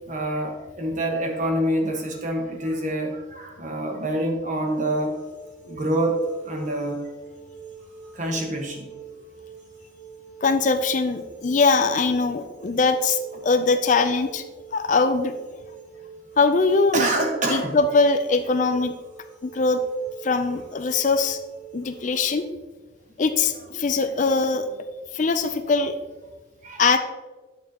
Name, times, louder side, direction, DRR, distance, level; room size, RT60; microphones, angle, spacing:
voice 1, 0.1-5.1 5.6-7.0 8.1-8.9 16.9-17.8 26.6-26.8, right 1 dB, 40° right, 1 dB, 1.3 m, -26 dB
sound 1, 4.7-22.3, right 5 dB, 65° right, 1.6 m, -45 dB
voice 2, 10.4-14.4 14.7-15.3 16.4-17.1 17.4-18.9 19.4-19.8 20.2-21.4 21.7-22.4 23.2-24.7 25.1-25.9 26.8-27.0, left 4 dB, 40° left, 9 dB, 0.4 m, -21 dB
9.0 x 6.7 x 2.9 m, 1.3 s
head